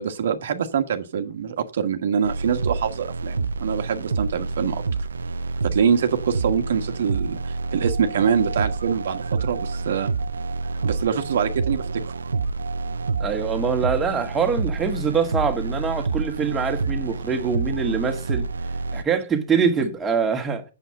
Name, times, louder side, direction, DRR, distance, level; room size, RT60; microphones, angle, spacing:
voice 1, 0.0-4.8 5.6-10.1 10.8-12.2, right 7 dB, 65° right, 1.3 m, -24 dB
sound 1, 2.2-19.0, right 4 dB, 80° right, 0.6 m, -28 dB
voice 2, 13.2-18.5 18.9-20.6, right 6 dB, 15° right, 1.9 m, -24 dB
7.9 x 7.2 x 7.7 m
hypercardioid pair, 125°, 0 cm